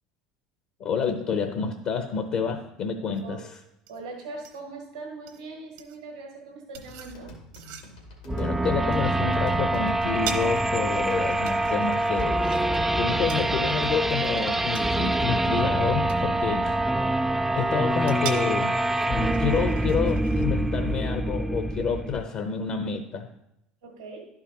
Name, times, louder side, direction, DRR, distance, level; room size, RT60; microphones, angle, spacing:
voice 1, 0.8-3.4 8.3-12.5 13.0-16.7 17.5-18.7 19.1-23.3, left 6 dB, 55° left, 6 dB, 0.7 m, -28 dB
sound 1, 3.1-20.4, right 8 dB, 70° right, 0.9 m, -44 dB
voice 2, 3.9-7.3 16.6-16.7 23.8-24.2, right 3 dB, 90° right, -1 dB, 1.5 m, -40 dB
sound 2, 6.7-15.5, equal, 90° left, 1.7 m, -47 dB
sound 3, 8.3-22.2, right 1 dB, 10° right, 0.3 m, -25 dB
11.0 x 4.8 x 2.9 m, 0.82 s
hypercardioid pair, 80°, 3 cm